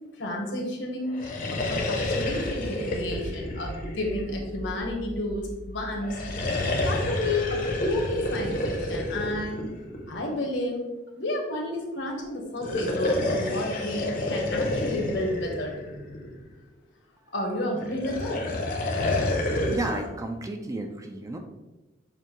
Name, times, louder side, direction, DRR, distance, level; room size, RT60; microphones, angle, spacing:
voice 1, 0.2-1.2 1.5-6.2 6.8-9.6 10.1-10.8 11.2-15.7 17.3-18.4, left 1 dB, 75° left, 1 dB, 1.1 m, -31 dB
sound 1, 1.1-4.7 6.0-10.3 12.5-16.5 17.8-20.1, left 1 dB, 50° left, 0.7 m, -29 dB
Accelerating revving vroom, 2.0-9.3, equal, 70° right, 1.0 m, -41 dB
voice 2, 19.7-21.4, right 2 dB, 20° right, 4 dB, 0.4 m, -32 dB
6.7 x 2.6 x 3.0 m, 1.0 s
head